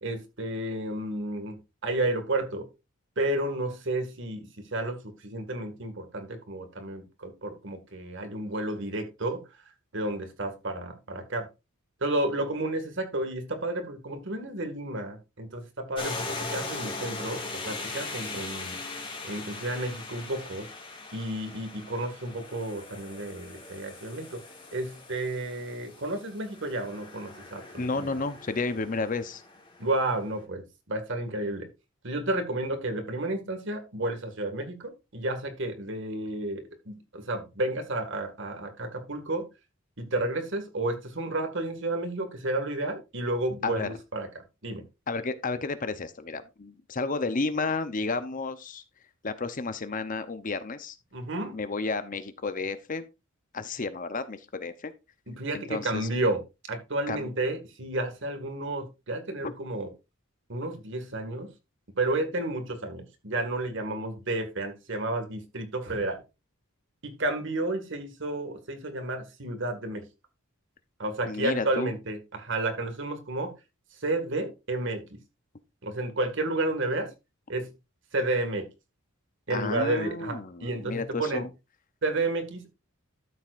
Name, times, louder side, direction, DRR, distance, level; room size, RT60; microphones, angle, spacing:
voice 1, 0.0-2.7 3.2-9.4 9.9-11.5 12.0-18.8 19.2-20.7 21.1-24.4 24.7-28.1 29.8-31.7 32.0-39.5 40.0-44.3 44.6-44.8 51.1-51.6 55.3-56.4 56.7-59.9 60.5-61.5 62.0-66.2 67.0-70.1 71.0-73.5 74.0-75.2 75.8-77.1 77.5-77.7 78.1-78.7 79.5-81.5 82.0-82.7, right 2 dB, 60° right, 2.0 m, -31 dB
sound 1, 15.9-30.1, left 3 dB, 25° left, 2.2 m, -40 dB
voice 2, 27.8-29.4 43.6-43.9 45.1-48.8 49.2-51.0 51.5-53.1 53.5-54.9 55.5-56.1 57.1-57.3 59.4-59.5 71.3-71.9 79.5-81.5, left 3 dB, 40° left, 0.7 m, -32 dB
12.5 x 7.5 x 2.5 m
head